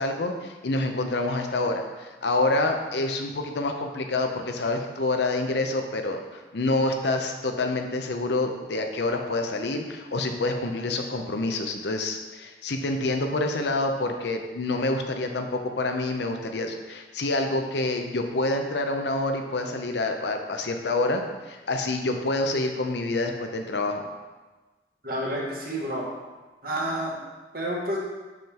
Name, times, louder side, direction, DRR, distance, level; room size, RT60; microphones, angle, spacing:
voice 1, 0.0-21.2 21.5-24.1, left 2 dB, 65° left, 5 dB, 0.6 m, -27 dB
voice 2, 25.0-26.1 26.6-27.2 27.5-28.0, right 1 dB, 50° right, -3 dB, 1.4 m, -29 dB
6.7 x 6.2 x 2.9 m, 1.2 s
head